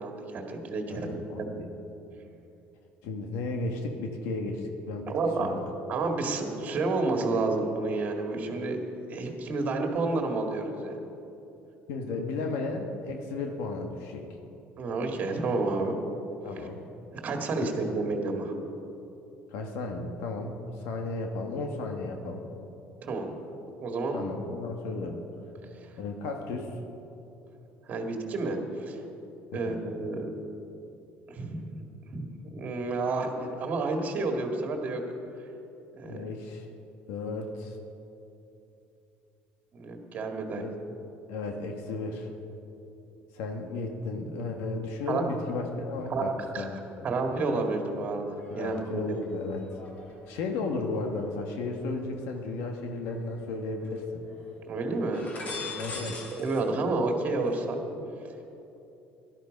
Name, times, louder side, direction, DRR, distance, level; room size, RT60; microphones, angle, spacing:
voice 1, 0.0-1.5 5.1-5.5 5.9-8.8 9.1-10.9 14.8-15.9 16.6-16.7 17.1-18.5 23.0-23.4 23.8-24.2 25.7-25.9 27.9-29.0 29.5-30.3 31.3-31.8 32.1-35.0 36.0-36.2 39.7-40.6 45.1-45.2 46.1-46.7 47.0-49.1 54.7-55.8 56.3-57.8, right 3 dB, 35° right, 3 dB, 1.9 m, -30 dB
voice 2, 0.9-1.7 3.0-5.1 5.4-5.6 11.9-14.3 16.4-16.8 17.6-17.7 19.5-22.4 24.1-25.2 26.0-26.8 29.5-29.8 36.0-36.7 37.1-37.8 40.5-40.7 41.3-42.3 43.3-47.1 48.5-49.6 50.3-54.2 55.8-56.2, left 3 dB, 85° left, 3 dB, 1.5 m, -34 dB
sound 1, 45.6-46.5 46.8-52.5 53.0-54.0 54.2-54.5 54.9-56.6 56.9-57.5, left 4 dB, 35° left, 2.5 m, -45 dB
17.5 x 12.5 x 5.3 m, 2.9 s
cardioid pair, 155°, 4 cm